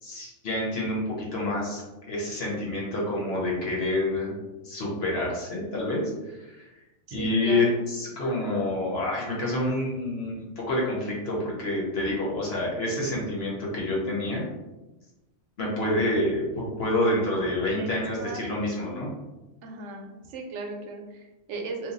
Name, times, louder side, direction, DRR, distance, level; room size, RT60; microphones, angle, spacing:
voice 1, 0.0-4.3 4.6-6.7 7.1-14.4 15.6-19.1, left 1 dB, 60° left, -4 dB, 1.2 m, -28 dB
voice 2, 7.1-7.8 17.8-18.4 19.6-21.9, right 3 dB, 75° right, 2 dB, 0.9 m, -37 dB
2.9 x 2.4 x 3.8 m, 1.1 s
omnidirectional pair, 1.2 m